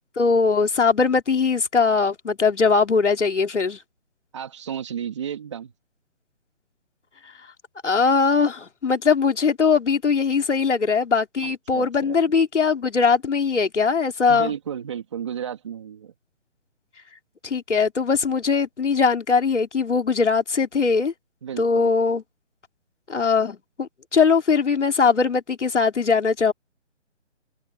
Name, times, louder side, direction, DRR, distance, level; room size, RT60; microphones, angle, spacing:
voice 1, 0.2-3.8 7.8-14.5 17.4-21.1 21.6-22.2 23.1-26.5, left 5 dB, 75° left, 3.2 m, -20 dB
voice 2, 4.3-5.7 11.4-12.2 14.3-16.1 21.4-22.0, right 8 dB, 25° right, 2.6 m, -33 dB
hypercardioid pair, 175°, 36 cm